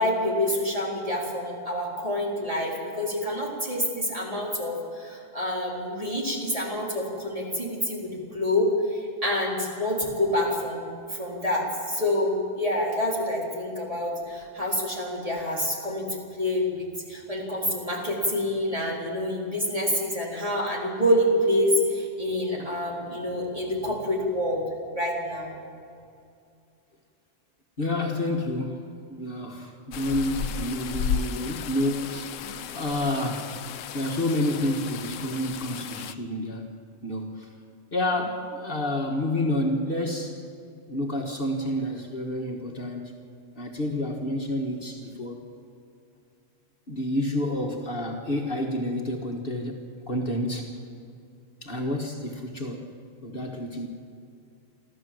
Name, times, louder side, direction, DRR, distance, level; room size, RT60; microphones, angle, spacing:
voice 1, 0.0-24.7 24.9-25.6, left 1 dB, 25° right, -3 dB, 4.0 m, -27 dB
voice 2, 27.8-28.8 29.1-32.4 32.7-33.5 33.9-36.8 37.0-37.5 37.9-40.4 40.9-43.1 43.6-45.4 46.9-49.8 50.1-50.8 51.6-52.9 53.2-53.9, left 1 dB, 45° left, 1 dB, 1.9 m, -29 dB
sound 1, 29.9-36.1, left 8 dB, 80° left, 1.0 m, -34 dB
26.0 x 14.0 x 7.8 m, 2.4 s
omnidirectional pair, 1.3 m